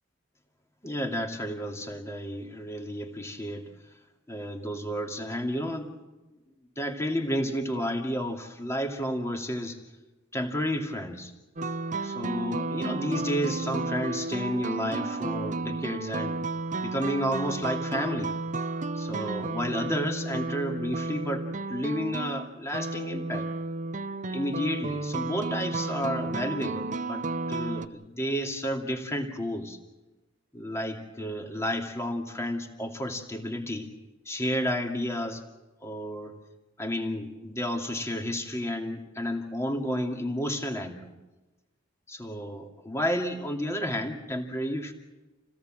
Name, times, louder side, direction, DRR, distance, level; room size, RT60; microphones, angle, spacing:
voice 1, 0.8-3.7 4.3-5.9 6.8-9.8 10.3-11.3 12.0-16.4 16.8-18.3 18.9-23.5 24.3-29.8 30.5-33.9 34.3-35.4 35.8-36.4 36.8-41.1 42.1-44.9, equal, 15° left, 3 dB, 2.5 m, -31 dB
sound 1, 11.6-27.9, right 3 dB, 40° right, 0.8 m, -32 dB
29.0 x 17.5 x 7.6 m, 1.1 s
head